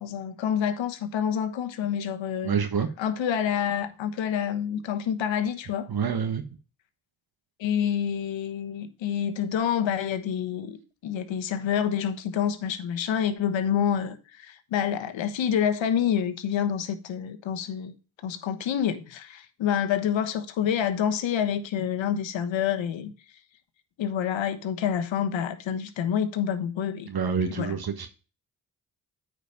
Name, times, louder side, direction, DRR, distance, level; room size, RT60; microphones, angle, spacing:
voice 1, 0.0-2.6 3.0-5.9 7.6-10.8 11.0-17.9 18.2-23.1 24.0-27.1 27.5-27.8, left 8 dB, 75° left, 1.3 m, -27 dB
voice 2, 2.4-2.9 5.9-6.4 27.1-28.1, right 6 dB, 50° right, 1.4 m, -27 dB
9.3 x 5.0 x 5.3 m
supercardioid pair, 50°, 46 cm